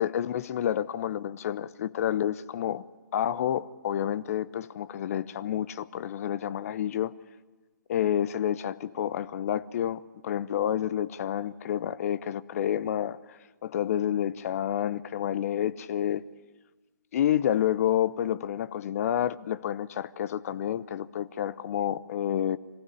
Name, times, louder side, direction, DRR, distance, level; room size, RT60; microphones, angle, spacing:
voice 1, 0.0-2.9 3.1-7.1 7.9-13.2 13.6-16.2 17.1-22.6, left 10 dB, 45° left, 16 dB, 0.7 m, -29 dB
24.5 x 16.0 x 9.7 m, 1.3 s
figure-of-eight pair, 130°, 11 cm